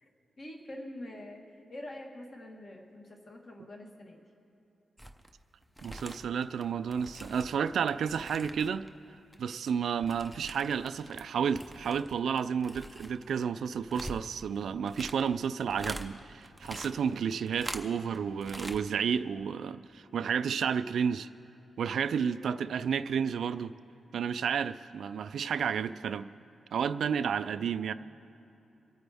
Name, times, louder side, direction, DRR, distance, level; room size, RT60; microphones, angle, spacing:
voice 1, 0.4-1.4 1.7-4.2 22.1-22.5, left 1 dB, 40° left, 1 dB, 1.6 m, -45 dB
sound 1, 5.0-5.3 5.6-8.9 9.1-11.3 11.5-16.1 16.4-18.2 18.4-18.8 19.1-19.2, equal, ahead, 0.6 m, -44 dB
voice 2, 5.8-8.9 9.4-21.3 21.8-23.7 24.1-26.3 26.7-27.9, right 7 dB, 70° right, 12 dB, 0.3 m, -31 dB
27.0 x 9.2 x 3.5 m, 2.9 s
wide cardioid pair, 175°, 0 cm